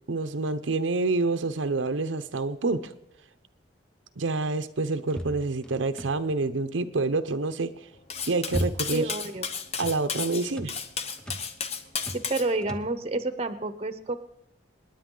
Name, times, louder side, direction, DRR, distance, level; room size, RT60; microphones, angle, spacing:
voice 1, 0.1-2.9 4.2-7.7 8.3-9.1 9.8-10.8, right 3 dB, 85° right, 9 dB, 0.7 m, -27 dB
sound 1, 5.1-6.4 7.9-9.1 9.4-10.0 10.5-10.8 11.2-11.5 12.0-12.3 12.6-13.0, equal, 5° left, 0.8 m, -35 dB
Cutlery silverware, 8.1-12.5, left 6 dB, 35° left, 0.8 m, -33 dB
voice 2, 8.9-9.5 12.1-14.2, right 2 dB, 35° right, 11 dB, 0.8 m, -29 dB
27.0 x 10.0 x 3.8 m, 0.81 s
head